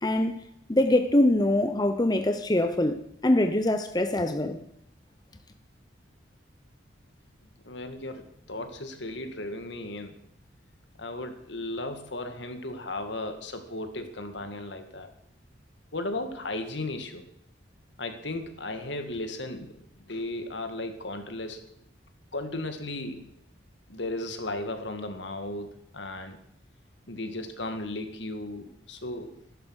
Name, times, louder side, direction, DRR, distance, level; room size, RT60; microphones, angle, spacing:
voice 1, 0.0-0.4 0.7-4.6, left 1 dB, 20° left, 0.8 m, -24 dB
voice 2, 7.6-10.2 11.0-15.1 15.9-17.2 18.0-21.6 22.3-23.3 23.9-26.4 27.1-29.3, left 2 dB, 70° left, 1.9 m, -35 dB
15.0 x 11.5 x 6.4 m
head